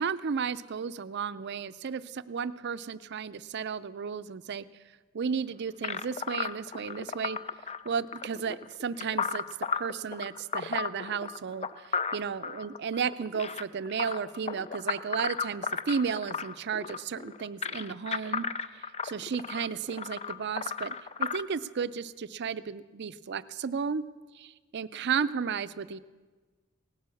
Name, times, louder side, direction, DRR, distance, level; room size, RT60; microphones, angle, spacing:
voice 1, 0.0-4.7 5.1-7.4 7.9-9.4 9.7-18.5 18.7-24.0 24.4-26.0, right 6 dB, 55° right, 14 dB, 0.5 m, -33 dB
sound 1, 5.8-21.4, left 5 dB, 30° left, 0.4 m, -35 dB
18.0 x 9.7 x 7.0 m, 1.3 s
head